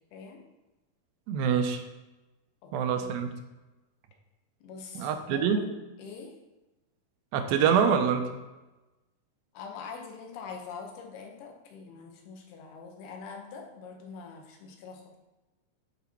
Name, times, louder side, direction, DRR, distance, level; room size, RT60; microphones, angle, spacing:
voice 1, 1.3-1.8 2.7-3.3 5.0-5.7 7.3-8.3, right 7 dB, 85° right, 6 dB, 2.4 m, -25 dB
voice 2, 2.6-3.2 4.6-6.3 9.5-15.2, left 5 dB, 90° left, 2 dB, 3.0 m, -44 dB
11.0 x 4.1 x 4.5 m, 1.1 s
omnidirectional pair, 4.4 m